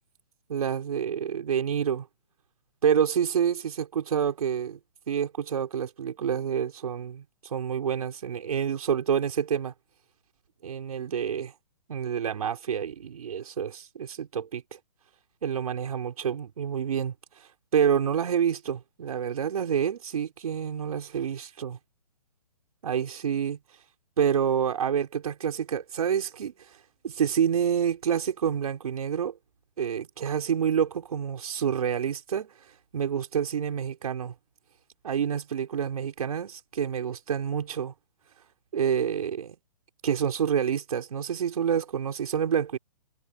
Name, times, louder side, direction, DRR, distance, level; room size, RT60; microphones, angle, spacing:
voice 1, 0.5-2.1 2.8-4.8 5.1-9.7 10.6-11.5 11.9-14.8 15.4-17.1 17.7-21.8 22.8-23.6 24.2-26.5 27.0-29.3 29.8-32.5 32.9-34.3 35.0-37.9 38.7-39.6 40.0-42.8, right 8 dB, 65° right, 4.2 m, -28 dB
hypercardioid pair, 140°, 20 cm